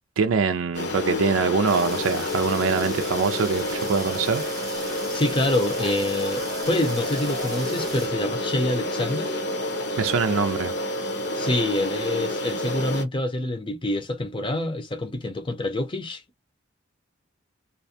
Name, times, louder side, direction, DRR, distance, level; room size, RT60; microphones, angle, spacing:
voice 1, 0.2-4.4 10.0-10.7, right 5 dB, 85° right, 0.4 m, -24 dB
sound 1, 0.7-13.0, left 1 dB, 55° left, 0.8 m, -29 dB
sound 2, 1.7-8.1, right 4 dB, 20° right, 0.8 m, -40 dB
voice 2, 5.1-9.3 11.3-16.2, left 1 dB, 25° left, 0.6 m, -26 dB
2.5 x 2.1 x 2.7 m
head